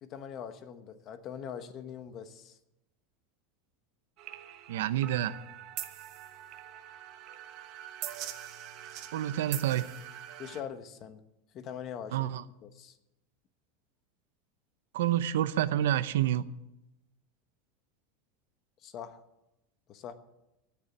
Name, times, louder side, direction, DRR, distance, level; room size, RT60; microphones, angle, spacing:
voice 1, 0.0-2.6 10.4-11.2 11.5-12.3 12.6-13.0 18.8-19.2 19.9-20.1, left 8 dB, 35° left, 1.1 m, -42 dB
sound 1, 4.2-10.6, right 12 dB, 45° right, 1.1 m, -43 dB
voice 2, 4.7-5.4 9.1-9.9 12.1-12.4 14.9-16.5, right 12 dB, 90° right, 0.8 m, -28 dB
17.5 x 7.0 x 8.1 m
supercardioid pair, 160°, 0 cm